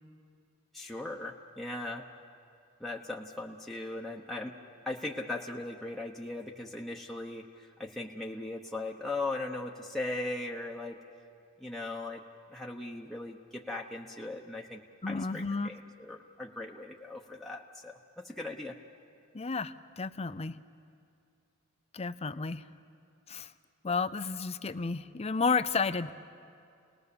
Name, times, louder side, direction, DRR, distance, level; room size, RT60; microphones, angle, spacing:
voice 1, 0.7-2.1 2.8-4.5 4.9-11.0 11.6-12.2 12.5-14.8 15.1-18.0 18.2-18.8, left 2 dB, ahead, -2 dB, 1.0 m, -38 dB
voice 2, 15.0-15.7 19.3-20.6 21.9-22.6 23.3-23.5 23.8-26.1, left 4 dB, 30° left, 12 dB, 0.6 m, -32 dB
29.5 x 19.0 x 6.9 m, 2.3 s
head